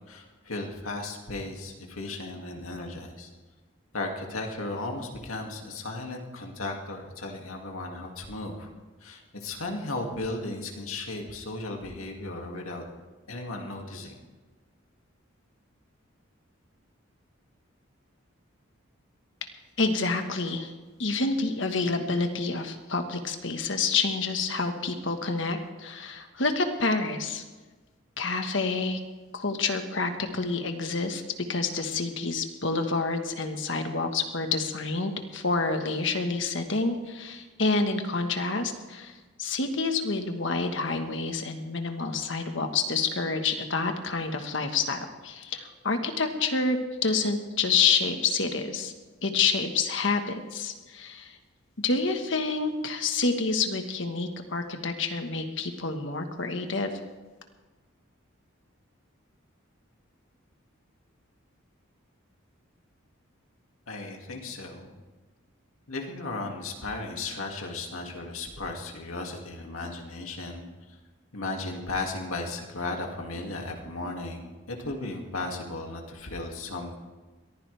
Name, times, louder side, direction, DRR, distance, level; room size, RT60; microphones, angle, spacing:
voice 1, 0.1-3.3 3.9-8.7 9.0-12.8 13.3-14.2 63.9-64.9 65.9-71.0 71.3-76.9, left 2 dB, 90° left, 1 dB, 2.4 m, -35 dB
voice 2, 19.8-20.7 21.0-27.4 28.2-29.0 29.3-31.2 31.5-48.9 49.2-51.4 51.8-56.9, left 4 dB, 65° left, 6 dB, 1.5 m, -28 dB
22.5 x 15.0 x 3.5 m, 1.3 s
head